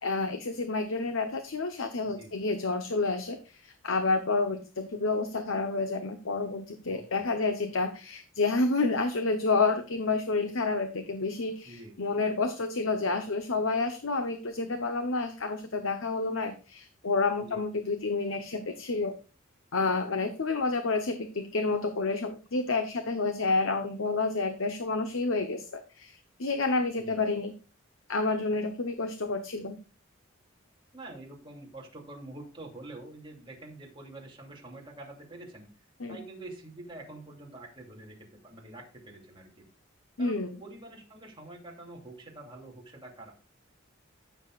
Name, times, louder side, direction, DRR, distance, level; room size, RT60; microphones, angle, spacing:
voice 1, 0.0-19.1 19.7-27.5 28.1-29.8 36.0-36.2 40.2-40.5, left 3 dB, 80° left, 7 dB, 0.9 m, -29 dB
voice 2, 2.0-2.5 6.8-7.3 11.6-11.9 17.4-17.7 27.0-27.2 30.9-35.7 36.1-39.7 40.2-43.3, right 2 dB, 25° right, -1 dB, 2.8 m, -46 dB
15.0 x 7.1 x 2.5 m, 0.34 s
head